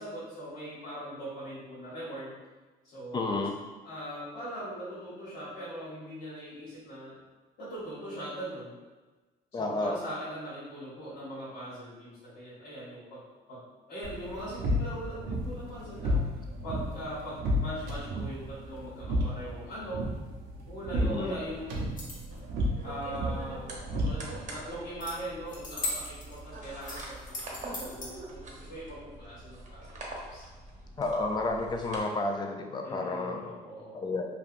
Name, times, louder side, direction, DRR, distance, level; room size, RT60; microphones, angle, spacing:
voice 1, 0.0-2.4 2.8-3.5 3.8-7.1 7.6-8.8 9.5-13.2 13.5-13.6 13.9-16.2 16.6-20.0 20.7-21.9 22.8-27.2 27.5-30.4 32.8-34.2, right 1 dB, 85° left, -10 dB, 1.3 m, -41 dB
voice 2, 3.1-3.5 9.5-10.0 21.0-21.4 31.0-33.4 34.0-34.2, left 2 dB, 25° left, 2 dB, 0.4 m, -31 dB
sound 1, 14.0-24.6, equal, 85° right, 0.6 m, -33 dB
sound 2, 21.8-22.4 25.0-25.1 25.5-26.4 26.8-28.1, left 2 dB, 50° left, 1.0 m, -37 dB
sound 3, 22.3-32.0, right 2 dB, 45° right, 0.8 m, -44 dB
3.2 x 2.3 x 2.5 m, 1.2 s
supercardioid pair, 80°, 17 cm